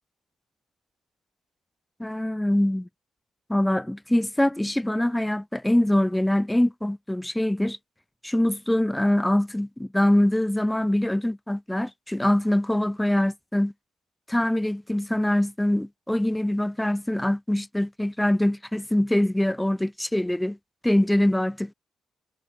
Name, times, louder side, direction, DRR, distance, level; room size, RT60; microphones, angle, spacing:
voice 1, 2.0-2.9 3.5-7.8 8.2-13.7 14.3-20.6 20.8-21.7, left 1 dB, 5° left, 0.3 m, -23 dB
cardioid pair, 100°, 0 cm